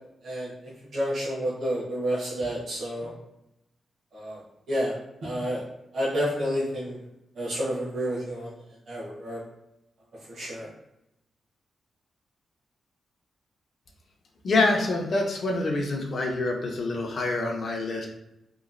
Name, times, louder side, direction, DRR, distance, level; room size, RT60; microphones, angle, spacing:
voice 1, 0.2-3.1 4.1-5.0 5.2-5.6 5.9-7.0 7.4-8.5 8.9-9.4 10.3-10.7, equal, 50° right, -8 dB, 0.9 m, -30 dB
voice 2, 14.4-18.1, left 2 dB, 45° left, 1 dB, 0.5 m, -26 dB
2.9 x 2.3 x 2.4 m, 0.87 s
wide cardioid pair, 155°, 0 cm